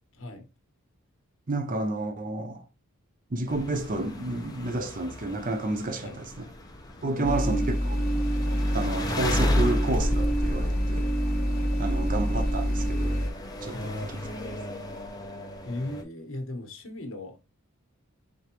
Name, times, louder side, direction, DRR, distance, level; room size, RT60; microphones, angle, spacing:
voice 1, 0.1-0.4 6.0-6.2 6.9-7.5 11.8-12.0 13.7-14.0 15.6-17.4, left 1 dB, 60° left, 1.3 m, -37 dB
voice 2, 1.5-2.6 3.3-6.5 7.0-8.0 8.7-11.1 11.8-13.3 13.6-14.3, right 2 dB, 35° right, 0.6 m, -31 dB
sound 1, 3.5-16.0, left 1 dB, 15° left, 0.7 m, -33 dB
sound 2, 7.2-13.3, equal, 40° left, 1.2 m, -26 dB
4.9 x 3.6 x 2.9 m
head